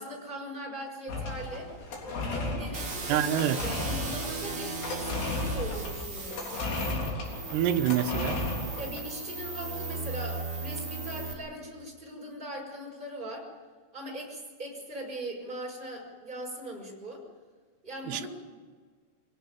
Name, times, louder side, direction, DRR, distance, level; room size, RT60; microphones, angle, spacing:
voice 1, 0.0-1.7 2.3-6.5 8.8-13.5 13.9-17.2 17.8-18.3, right 1 dB, 10° right, 5.7 m, -40 dB
sound 1, 1.1-9.0, left 2 dB, 75° left, 5.9 m, -34 dB
sound 2, 2.7-11.3, right 3 dB, 35° right, 4.0 m, -37 dB
voice 2, 3.1-3.6 7.5-8.5 18.1-18.3, right 10 dB, 80° right, 3.2 m, -26 dB
25.0 x 17.0 x 9.2 m
omnidirectional pair, 4.8 m